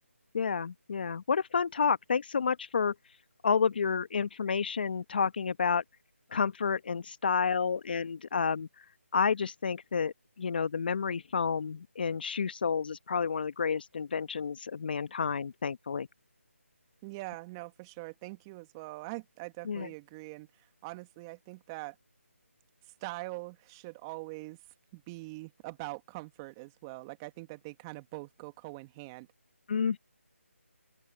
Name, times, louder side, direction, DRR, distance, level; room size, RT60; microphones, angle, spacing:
voice 1, 0.3-2.9 3.4-5.8 6.3-8.7 9.1-16.1 19.7-19.9 29.7-30.0, left 6 dB, 45° left, 1.3 m, -30 dB
voice 2, 17.0-22.0 22.8-24.6 24.9-29.3, right 24 dB, 15° right, 2.2 m, -43 dB
open air
figure-of-eight pair, 160°, 7 cm